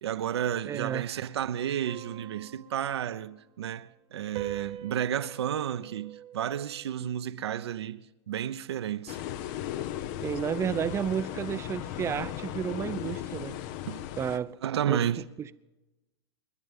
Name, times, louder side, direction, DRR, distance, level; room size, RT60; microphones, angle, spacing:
voice 1, 0.0-8.0 8.3-9.2 13.9-14.0 14.6-15.2, right 10 dB, 75° right, 0.9 m, -32 dB
voice 2, 0.7-1.1 10.2-13.6 14.2-14.6 14.9-15.0 15.4-15.6, right 8 dB, 20° right, 0.6 m, -32 dB
sound 1, 1.9-3.6 4.4-7.0, right 11 dB, 35° right, 1.3 m, -43 dB
sound 2, 9.1-14.4, left 12 dB, 45° left, 0.9 m, -36 dB
29.5 x 11.0 x 3.6 m
hypercardioid pair, 120°, 14 cm